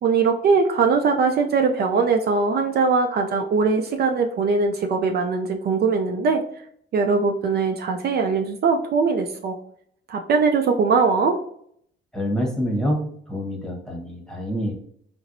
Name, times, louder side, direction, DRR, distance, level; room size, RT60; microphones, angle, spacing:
voice 1, 0.0-6.4 6.9-9.6 10.1-11.4, right 4 dB, 55° right, 4 dB, 0.4 m, -21 dB
voice 2, 12.1-13.0 13.3-14.7, equal, 5° left, -1 dB, 1.0 m, -26 dB
4.4 x 2.0 x 2.5 m, 0.66 s
cardioid pair, 90°, 20 cm